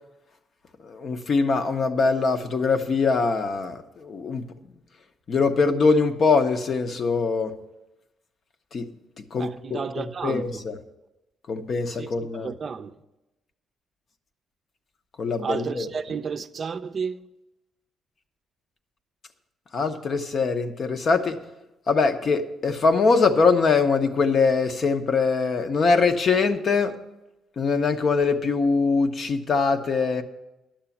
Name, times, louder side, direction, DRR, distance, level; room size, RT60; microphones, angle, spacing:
voice 1, 0.8-4.5 5.3-7.5 8.7-8.9 9.2-10.7 11.5-12.5 15.2-15.9 19.7-21.4 21.9-27.0 27.6-30.2, left 4 dB, 50° left, 0.8 m, -23 dB
voice 2, 9.3-10.6 11.9-12.1 12.3-13.0 15.4-17.2, right 6 dB, 45° right, 0.5 m, -32 dB
10.5 x 6.8 x 7.1 m
cardioid pair, 90°, 0 cm